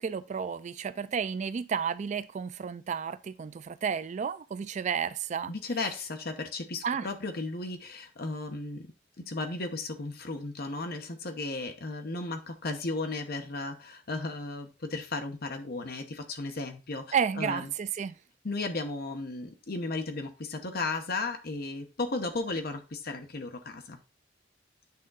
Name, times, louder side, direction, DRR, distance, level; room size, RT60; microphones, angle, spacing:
voice 1, 0.0-5.5 6.8-7.1 17.1-18.1, right 7 dB, 40° right, 0.3 m, -32 dB
voice 2, 5.5-8.9 9.2-17.7 18.4-24.0, left 3 dB, 60° left, 1.0 m, -35 dB
8.4 x 3.8 x 3.9 m
head